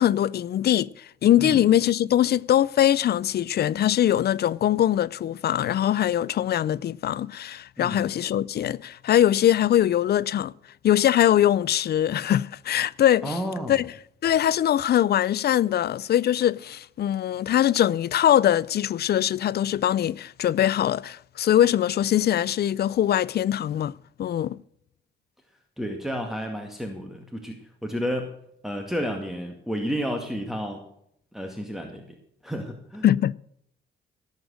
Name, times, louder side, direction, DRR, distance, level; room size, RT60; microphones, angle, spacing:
voice 1, 0.0-10.5 10.8-13.4 13.7-13.9 14.2-23.9 24.2-24.6 33.0-33.3, left 11 dB, 55° left, 0.5 m, -22 dB
voice 2, 7.8-8.1 13.2-13.8 25.8-28.3 28.6-30.8 31.3-32.0 32.4-33.1, equal, ahead, 2.1 m, -31 dB
17.5 x 8.1 x 6.4 m
cardioid pair, 90°, 20 cm